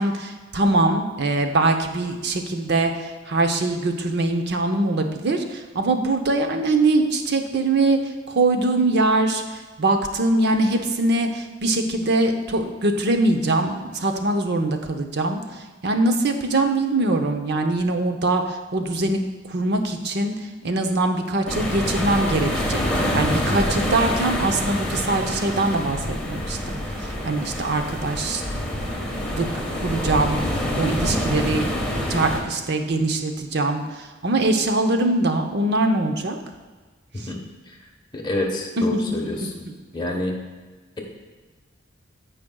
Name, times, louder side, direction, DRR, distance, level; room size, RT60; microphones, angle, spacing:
voice 1, 0.0-15.4 15.8-19.2 19.5-22.8 23.1-28.4 29.3-29.5 29.8-30.4 30.7-31.7 32.1-36.4 37.2-37.3 38.8-39.0, right 2 dB, 60° right, 5 dB, 0.7 m, -22 dB
sound 1, 21.5-32.4, left 1 dB, 5° left, 1.3 m, -26 dB
voice 2, 38.1-39.4 39.9-40.3, left 1 dB, 25° left, 0 dB, 1.1 m, -27 dB
14.5 x 5.1 x 2.3 m, 1.4 s
head